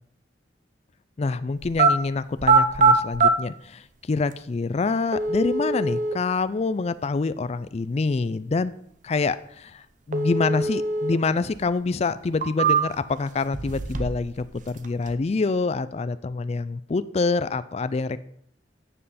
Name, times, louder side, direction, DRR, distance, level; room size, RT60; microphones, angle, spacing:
voice 1, 1.2-8.7 9.0-18.2, left 3 dB, 35° left, 15 dB, 0.4 m, -26 dB
sound 1, 1.6-1.9 2.4-3.3 4.3-4.4 5.1-6.1 10.1-11.1 11.5-11.6 12.2-13.1 13.5-14.3 14.5-15.1, right 4 dB, 45° right, 0.8 m, -22 dB
12.5 x 7.6 x 4.2 m, 0.69 s
head